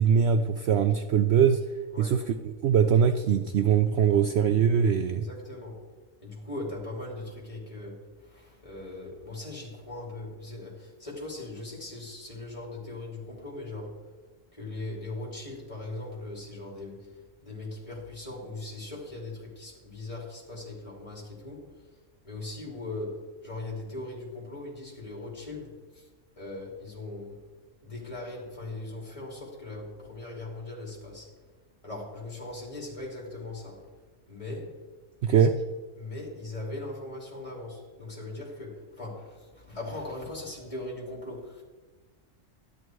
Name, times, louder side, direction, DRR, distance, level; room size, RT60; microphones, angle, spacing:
voice 1, 0.0-1.6 2.0-5.2 35.2-35.5, right 7 dB, 65° right, 8 dB, 0.7 m, -22 dB
voice 2, 5.1-5.8 6.2-14.0 14.5-17.1 17.4-21.7 22.2-26.0 26.4-27.4 27.8-31.3 31.8-33.8 34.3-34.8 36.0-41.6, left 2 dB, 25° left, -2 dB, 3.4 m, -39 dB
12.5 x 10.5 x 4.6 m, 1.3 s
omnidirectional pair, 1.3 m